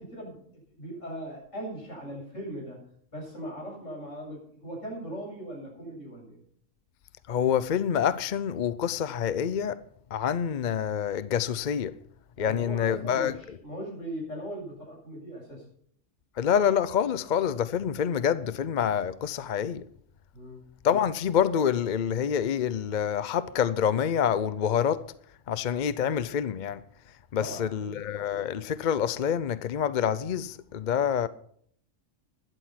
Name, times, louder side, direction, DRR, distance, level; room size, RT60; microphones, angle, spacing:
voice 1, 0.0-2.8 3.1-6.4 12.4-15.6 20.3-20.7 27.4-27.9, equal, 80° left, 8.1 m, -39 dB
voice 2, 7.3-9.8 10.1-11.9 12.4-13.6 16.4-19.9 20.8-25.1 25.5-26.8 27.3-31.3, left 8 dB, 50° left, 0.6 m, -27 dB
12.5 x 11.0 x 5.8 m
omnidirectional pair, 1.3 m